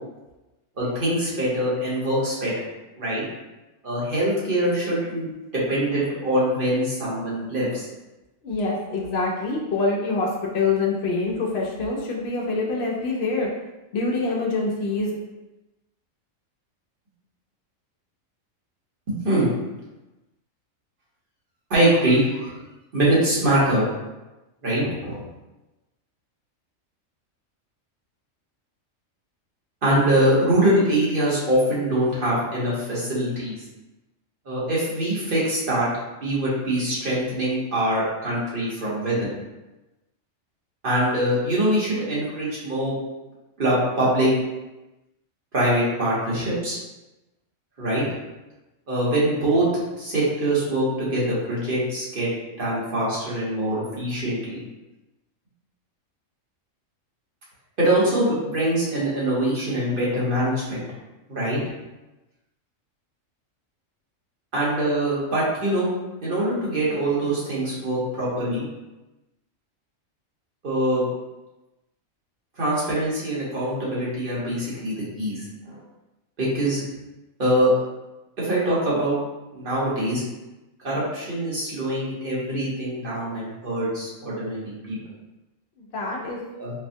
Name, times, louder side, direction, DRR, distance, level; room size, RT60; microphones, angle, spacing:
voice 1, 0.8-2.5 3.0-3.2 3.8-5.3 5.5-7.9 19.1-19.5 21.7-22.5 22.9-23.9 24.6-25.2 29.8-33.6 34.4-35.9 36.2-39.3 40.8-42.9 43.6-44.3 45.5-46.8 47.8-48.0 48.9-49.7 50.0-52.3 52.6-54.6 57.8-60.8 61.3-61.6 64.5-65.9 66.2-68.6 70.6-71.0 72.6-75.8 76.4-76.8 77.4-77.7 78.4-79.2 79.5-80.2 80.8-85.0 86.6-86.7, right 1 dB, 45° right, -7 dB, 1.1 m, -23 dB
voice 2, 8.4-13.5 13.9-15.2 85.8-86.4, left 3 dB, 60° left, -3 dB, 0.7 m, -25 dB
4.2 x 2.1 x 2.6 m, 1.1 s
omnidirectional pair, 1.4 m